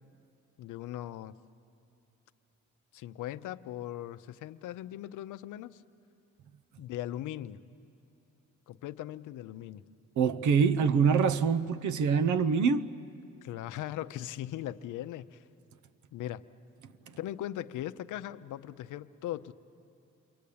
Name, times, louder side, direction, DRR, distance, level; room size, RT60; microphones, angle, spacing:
voice 1, 0.6-1.4 2.9-5.8 6.8-7.6 8.7-9.8 13.4-15.4 16.1-16.4 17.2-19.5, left 13 dB, 85° left, 0.7 m, -39 dB
voice 2, 10.2-12.9, right 6 dB, 75° right, 0.9 m, -25 dB
28.5 x 23.0 x 8.6 m
cardioid pair, 90°, 30 cm